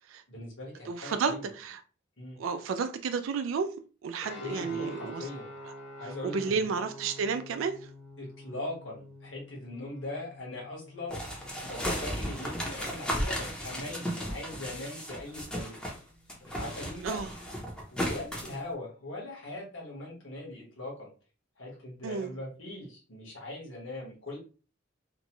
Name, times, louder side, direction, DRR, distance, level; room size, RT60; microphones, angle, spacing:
voice 1, 0.3-1.5 2.2-2.4 4.4-5.5 6.0-6.7 8.2-15.8 16.4-17.2 17.9-21.1 21.6-24.4, left 2 dB, 75° left, 1.3 m, -41 dB
voice 2, 0.9-1.8 2.4-3.7 4.0-5.2 6.2-7.9 17.0-17.3 22.0-22.3, right 5 dB, 90° right, 0.4 m, -31 dB
sound 1, 4.2-13.2, left 1 dB, 55° left, 1.1 m, -48 dB
sound 2, 11.1-16.0 16.3-18.6, equal, 5° left, 0.6 m, -35 dB
2.9 x 2.2 x 2.9 m
head